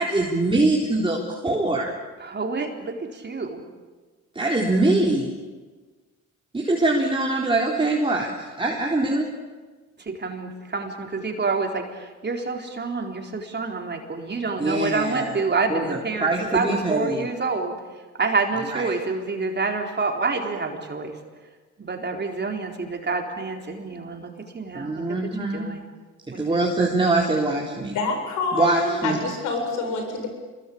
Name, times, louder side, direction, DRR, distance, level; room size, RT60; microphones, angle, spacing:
voice 1, 0.0-1.9 4.3-5.3 6.5-9.3 14.6-15.3 15.7-15.8 16.2-17.3 18.7-18.8 24.7-25.7 26.4-27.9 28.5-29.2, right 2 dB, 15° right, -1 dB, 4.1 m, -23 dB
voice 2, 2.2-3.6 10.0-21.2 21.8-25.2 25.5-25.9 26.3-26.6, right 4 dB, 35° right, 2 dB, 4.2 m, -28 dB
voice 3, 27.9-30.3, left 3 dB, 90° left, 4 dB, 7.5 m, -26 dB
28.0 x 23.0 x 8.8 m, 1.3 s
cardioid pair, 90°, 30 cm